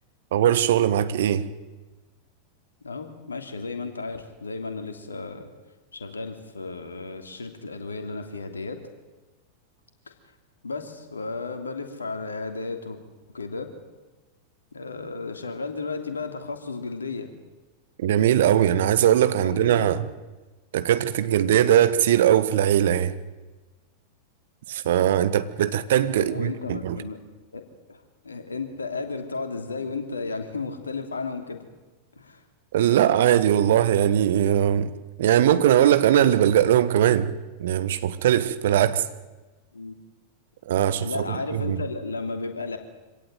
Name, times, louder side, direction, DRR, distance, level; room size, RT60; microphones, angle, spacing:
voice 1, 0.3-1.5 18.0-20.0 20.7-23.1 24.7-27.0 32.7-34.9 35.2-37.3 37.6-39.0 40.7-41.8, right 11 dB, 60° right, 1.4 m, -20 dB
voice 2, 2.8-5.5 5.9-8.8 10.1-10.2 10.6-13.0 13.3-13.7 14.7-17.3 19.4-19.9 26.2-27.2 27.5-31.6 32.2-32.4 39.7-39.9 41.0-42.8, left 4 dB, 75° left, 3.0 m, -34 dB
25.5 x 17.0 x 9.5 m
figure-of-eight pair, 90°, 0 cm